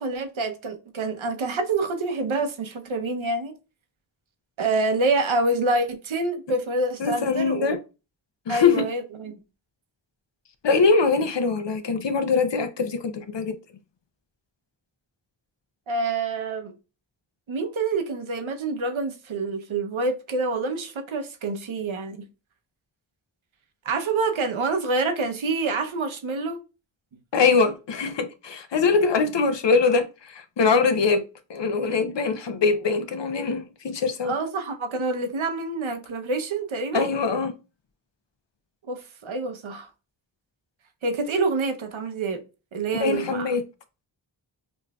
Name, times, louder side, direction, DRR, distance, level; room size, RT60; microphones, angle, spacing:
voice 1, 0.0-3.6 4.6-7.7 8.5-9.4 15.9-16.7 17.5-22.2 23.8-26.6 34.2-37.1 38.9-39.9 41.0-42.4 42.7-43.5, right 3 dB, 90° right, 0.8 m, -27 dB
voice 2, 7.0-7.8 8.5-8.9 10.6-13.6 27.3-31.2 31.5-34.3 36.9-37.5 43.0-43.6, left 4 dB, 65° left, 0.7 m, -22 dB
5.3 x 2.5 x 2.2 m
cardioid pair, 40°, 46 cm